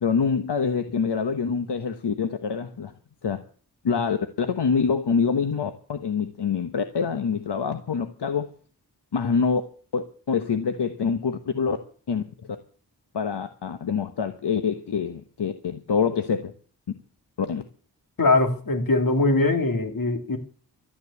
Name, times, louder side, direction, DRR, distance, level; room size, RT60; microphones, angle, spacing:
voice 1, 0.0-2.9 3.2-3.4 3.8-8.5 9.1-9.6 9.9-11.8 12.1-12.2 13.1-16.5 17.4-17.6, left 6 dB, 75° left, 1.2 m, -25 dB
voice 2, 18.2-20.4, left 2 dB, 55° left, 2.7 m, -21 dB
13.0 x 9.7 x 8.4 m
wide cardioid pair, 95°, 41 cm